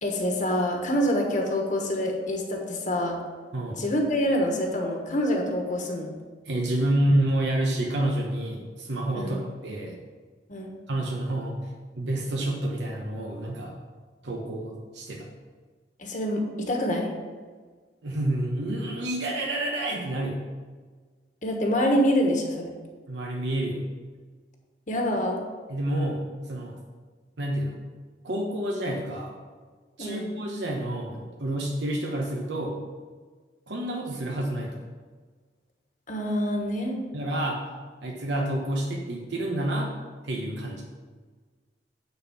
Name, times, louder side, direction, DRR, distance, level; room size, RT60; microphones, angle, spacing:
voice 1, 0.0-3.2 3.8-6.1 9.1-9.4 10.5-10.7 16.0-17.1 21.4-22.7 24.9-25.4 30.0-30.3 36.1-37.0, equal, 45° left, 1 dB, 1.3 m, -26 dB
voice 2, 6.4-10.0 10.9-11.7 12.0-13.7 14.2-15.3 18.0-20.4 23.1-23.8 25.7-26.8 27.4-27.8 28.2-29.4 30.0-32.8 33.7-34.8 37.1-37.6 38.0-39.9 40.2-40.8, right 1 dB, 75° right, -1 dB, 1.1 m, -28 dB
9.2 x 4.2 x 7.1 m, 1.5 s
head